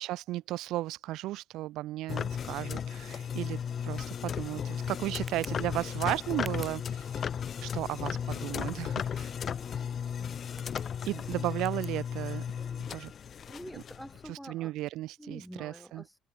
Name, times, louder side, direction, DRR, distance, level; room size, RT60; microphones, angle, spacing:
voice 1, 0.0-7.3 7.6-9.3 11.1-12.4 12.9-13.1 14.3-16.0, right 16 dB, 70° right, 0.4 m, -35 dB
sound 1, 2.1-14.3, left 8 dB, 35° left, 0.4 m, -35 dB
Tick, 3.6-12.8, right 5 dB, 20° right, 1.8 m, -56 dB
voice 2, 12.6-13.1 13.5-14.7 15.2-16.2, equal, ahead, 1.3 m, -48 dB
cardioid pair, 165°, 0 cm